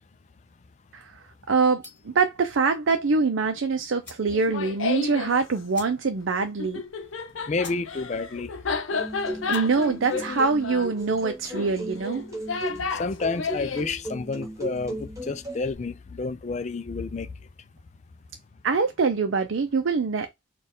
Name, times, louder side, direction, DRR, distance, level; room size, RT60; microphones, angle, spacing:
voice 1, 1.5-6.8 9.5-12.2 18.6-20.3, right 4 dB, 80° right, 0.5 m, -24 dB
sound 1, 1.8-2.2 3.5-3.6 4.0-4.3 4.7-4.8 5.0-5.2 5.7-6.3 6.6-6.7 7.2-7.3 7.6-7.9 8.2-8.6 9.3-9.7, left 2 dB, 10° left, 2.0 m, -46 dB
Laughter, 4.3-5.4 6.6-13.9, left 5 dB, 85° left, 0.7 m, -32 dB
voice 2, 7.5-8.5 12.9-17.3, left 4 dB, 35° left, 0.4 m, -30 dB
sound 2, 8.9-15.7, right 1 dB, 15° right, 1.2 m, -36 dB
4.2 x 2.4 x 3.6 m
head